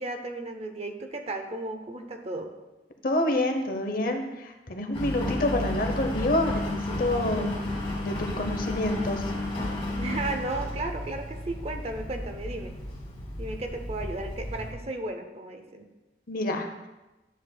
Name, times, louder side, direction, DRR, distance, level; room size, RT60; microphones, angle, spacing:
voice 1, 0.0-2.5 10.0-12.7 13.4-15.9, right 2 dB, 35° right, 5 dB, 0.6 m, -34 dB
voice 2, 3.0-7.5 8.0-9.3 16.3-16.7, left 1 dB, 50° left, 5 dB, 0.8 m, -28 dB
Engine, 4.9-14.7, left 1 dB, 30° left, 1.7 m, -32 dB
10.0 x 6.6 x 2.2 m, 1.1 s
head